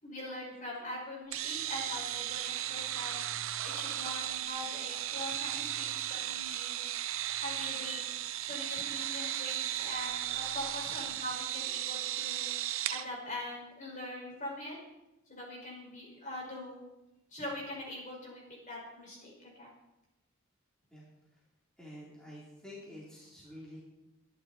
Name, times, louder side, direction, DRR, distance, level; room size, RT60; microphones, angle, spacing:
voice 1, 0.0-3.3 3.6-6.7 7.4-12.4 12.9-14.8 15.3-16.8 17.3-19.7, left 1 dB, 35° left, -3 dB, 6.2 m, -42 dB
sound 1, 1.3-13.0, right 12 dB, 70° right, 0.8 m, -36 dB
voice 2, 21.8-23.8, left 1 dB, 5° left, -7 dB, 3.5 m, -49 dB
23.0 x 10.5 x 4.5 m, 0.93 s
head